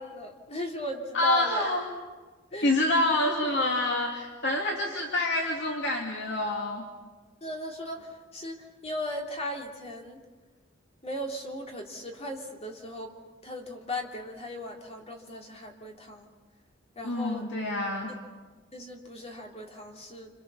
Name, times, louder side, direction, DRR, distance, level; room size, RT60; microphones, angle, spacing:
voice 1, 0.0-1.7 2.5-2.7 4.8-4.9 7.4-10.2 11.0-13.1 13.4-16.3 17.0-17.5 18.7-20.3, equal, 30° left, 1 dB, 3.4 m, -37 dB
voice 2, 1.1-1.8 2.6-6.9 17.0-18.1, left 2 dB, 60° left, 0 dB, 2.6 m, -27 dB
28.0 x 27.0 x 7.1 m, 1.3 s
head